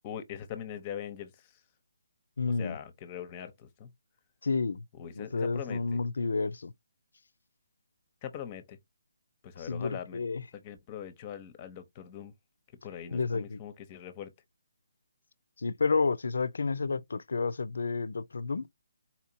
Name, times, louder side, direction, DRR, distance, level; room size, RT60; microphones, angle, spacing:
voice 1, 0.0-1.6 2.6-3.9 5.0-6.0 8.2-8.8 9.4-10.2 10.5-12.3 12.8-14.3, left 9 dB, 25° left, 0.6 m, -42 dB
voice 2, 2.4-2.8 4.4-4.8 5.2-6.7 9.6-10.4 13.1-13.6 15.6-18.7, left 4 dB, 70° left, 0.4 m, -30 dB
4.1 x 2.8 x 2.6 m
figure-of-eight pair, 155°, 0 cm